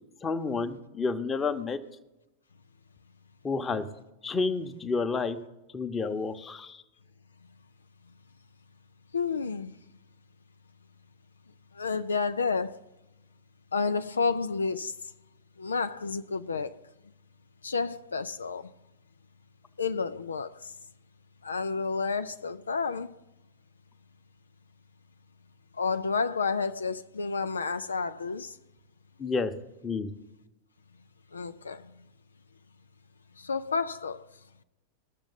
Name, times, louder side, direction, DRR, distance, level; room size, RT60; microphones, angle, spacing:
voice 1, 0.2-1.8 3.4-3.9 4.2-5.4 5.7-6.8 29.2-29.5 29.8-30.1, left 4 dB, 20° left, 1.0 m, -30 dB
voice 2, 9.1-9.7 11.8-12.8 13.7-14.9 15.6-16.8 17.6-18.7 19.8-20.5 21.4-23.1 25.8-28.5 31.3-31.8 33.4-34.2, left 4 dB, 75° left, 0.4 m, -30 dB
19.5 x 6.8 x 4.0 m
figure-of-eight pair, 90°, 0 cm